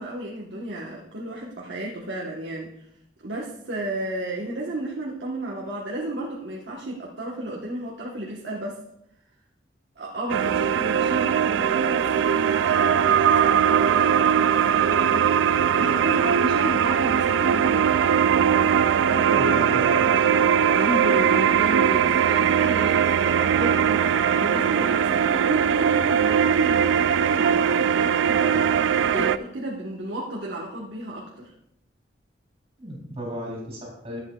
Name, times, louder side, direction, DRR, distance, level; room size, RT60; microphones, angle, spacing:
voice 1, 0.0-2.7 3.2-8.8 10.0-18.0 18.5-19.6 20.7-31.5, right 1 dB, 70° right, -4 dB, 1.2 m, -33 dB
sound 1, 10.3-29.4, right 8 dB, 85° right, 0.3 m, -20 dB
voice 2, 19.3-20.3 32.8-34.2, equal, 35° right, -3 dB, 3.5 m, -34 dB
14.0 x 8.2 x 2.3 m, 0.79 s
head